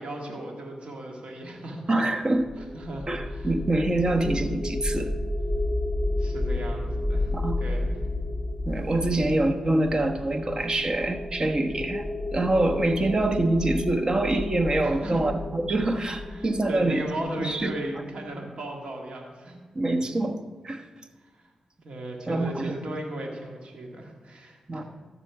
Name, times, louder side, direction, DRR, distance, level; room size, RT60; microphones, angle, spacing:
voice 1, 0.0-2.1 2.6-3.5 6.2-7.3 7.6-8.0 14.8-15.2 16.2-19.6 21.2-21.5 21.8-24.8, right 1 dB, 60° right, 1 dB, 2.0 m, -36 dB
voice 2, 1.9-2.6 3.1-5.1 7.3-7.6 8.7-17.0 17.3-17.7 19.7-20.4 20.6-20.9 22.3-22.7 24.7-24.8, right 2 dB, 40° right, 6 dB, 1.2 m, -25 dB
sound 1, 2.4-17.5, left 1 dB, ahead, 3.4 m, -31 dB
13.5 x 6.8 x 4.9 m, 1.4 s
supercardioid pair, 45°, 2 cm